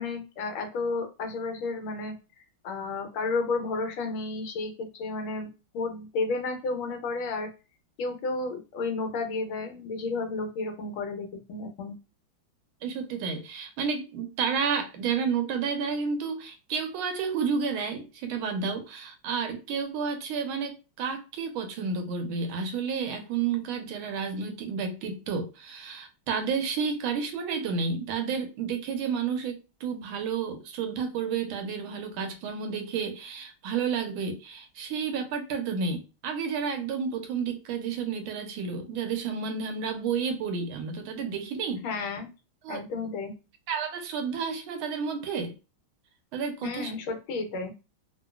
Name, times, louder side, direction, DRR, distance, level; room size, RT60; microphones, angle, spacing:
voice 1, 0.0-2.1 2.6-5.5 5.7-7.5 8.0-11.9 41.8-42.3 42.7-43.3 46.6-47.7, left 3 dB, 80° left, 1.5 m, -32 dB
voice 2, 12.8-41.8 42.6-42.8 43.7-45.5 46.3-46.9, right 6 dB, 80° right, 1.4 m, -31 dB
3.7 x 2.3 x 2.3 m
omnidirectional pair, 2.3 m